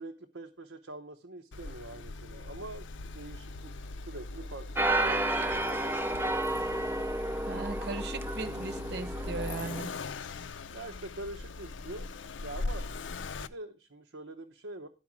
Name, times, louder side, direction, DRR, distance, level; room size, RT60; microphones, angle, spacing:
voice 1, 0.0-2.9 3.1-3.7 4.0-5.8 10.7-12.1 12.4-13.0 13.4-14.9, right 2 dB, 90° right, 0.8 m, -44 dB
Accelerating revving vroom, 1.5-13.5, left 3 dB, 80° left, 0.5 m, -40 dB
sound 1, 4.8-9.8, right 1 dB, 10° right, 0.4 m, -31 dB
voice 2, 7.5-10.0, right 3 dB, 60° right, 0.8 m, -38 dB
11.5 x 4.7 x 6.0 m
head